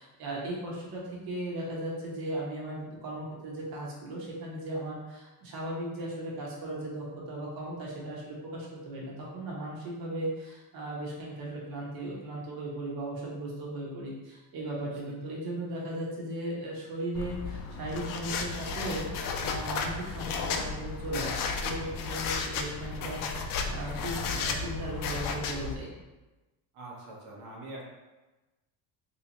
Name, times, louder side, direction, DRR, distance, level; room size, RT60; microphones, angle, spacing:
voice 1, 0.0-25.9, right 1 dB, 50° right, -4 dB, 1.1 m, -37 dB
sound 1, 17.2-25.8, left 5 dB, 45° left, 0.5 m, -33 dB
voice 2, 26.7-27.8, right 2 dB, 75° right, -3 dB, 1.2 m, -44 dB
3.3 x 2.9 x 2.9 m, 1.1 s
cardioid pair, 115°, 47 cm